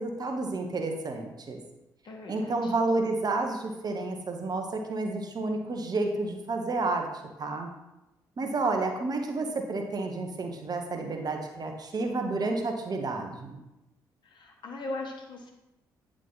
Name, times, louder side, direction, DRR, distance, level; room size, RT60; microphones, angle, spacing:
voice 1, 0.0-1.6 2.3-7.1 7.4-7.7 8.4-13.6, right 3 dB, 40° right, 3 dB, 1.1 m, -30 dB
voice 2, 2.0-2.7 14.2-15.5, left 2 dB, 50° left, 1 dB, 1.5 m, -39 dB
9.2 x 3.6 x 4.0 m, 0.96 s
hypercardioid pair, 40°, 10 cm